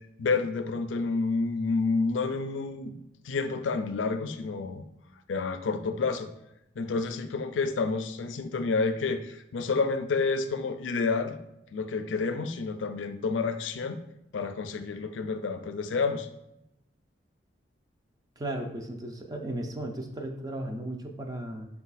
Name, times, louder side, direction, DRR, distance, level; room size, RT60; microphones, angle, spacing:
voice 1, 0.2-2.9 3.2-4.8 5.3-6.3 6.8-11.4 11.7-14.0 14.3-16.3, left 4 dB, 90° left, 9 dB, 0.4 m, -29 dB
voice 2, 18.4-21.7, right 1 dB, 20° right, 3 dB, 0.4 m, -35 dB
4.7 x 2.3 x 4.0 m, 0.84 s
head